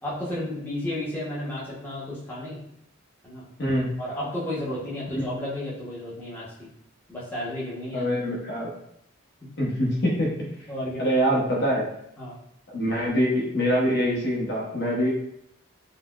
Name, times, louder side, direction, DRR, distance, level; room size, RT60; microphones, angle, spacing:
voice 1, 0.0-2.6 3.2-3.4 4.0-6.7 7.1-8.1 10.7-11.0 12.2-12.4, left 1 dB, 10° left, -8 dB, 0.7 m, -32 dB
voice 2, 7.9-8.7 9.6-10.3 11.0-11.9 12.7-15.1, equal, 50° left, -3 dB, 0.7 m, -24 dB
3.9 x 2.0 x 2.2 m, 0.74 s
head